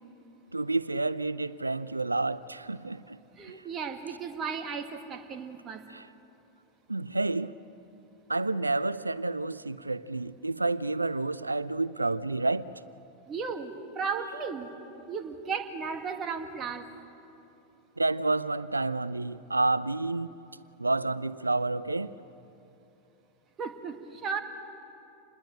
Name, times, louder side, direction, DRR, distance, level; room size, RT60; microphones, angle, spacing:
voice 1, 0.5-3.2 3.5-3.6 5.9-6.1 6.9-7.5 8.3-12.7 18.0-20.3 20.8-22.1, right 2 dB, 80° right, 0.5 m, -29 dB
voice 2, 3.4-5.8 13.3-14.7 15.1-16.9 23.6-24.4, right 5 dB, 25° right, 1.8 m, -35 dB
27.5 x 20.5 x 8.8 m
figure-of-eight pair, 90°, 0 cm